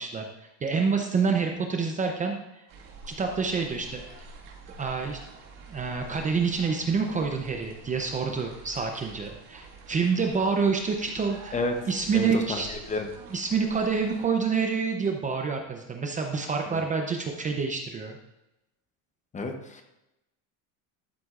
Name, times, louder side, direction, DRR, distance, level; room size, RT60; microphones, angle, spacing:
voice 1, 0.0-2.6 3.1-4.3 4.8-5.2 5.7-11.6 11.9-12.7 13.3-18.2, right 5 dB, 20° right, 3 dB, 0.6 m, -27 dB
sound 1, 2.7-14.3, right 4 dB, 55° right, 1.9 m, -48 dB
voice 2, 12.1-13.1 16.7-16.8 19.3-19.8, left 2 dB, 20° left, 5 dB, 0.8 m, -30 dB
12.5 x 7.6 x 2.5 m, 0.92 s
cardioid pair, 145°, 41 cm